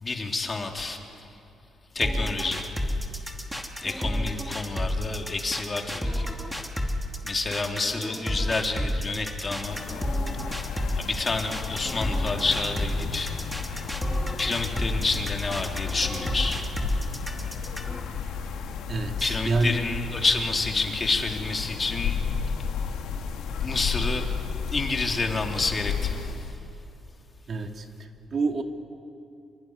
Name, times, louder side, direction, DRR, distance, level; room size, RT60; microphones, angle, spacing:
voice 1, 0.0-1.2 1.9-2.6 3.8-6.3 7.2-9.8 10.9-13.3 14.4-16.6 19.2-22.2 23.6-24.2 24.7-26.4, left 3 dB, 30° left, 2 dB, 3.3 m, -29 dB
sound 1, 2.0-18.0, equal, ahead, 2.8 m, -30 dB
sound 2, 9.6-26.6, left 6 dB, 85° left, 2.5 m, -33 dB
voice 2, 18.9-19.9 27.5-28.6, right 3 dB, 50° right, 4 dB, 2.2 m, -28 dB
26.5 x 23.0 x 9.8 m, 2.7 s
cardioid pair, 90°, 0 cm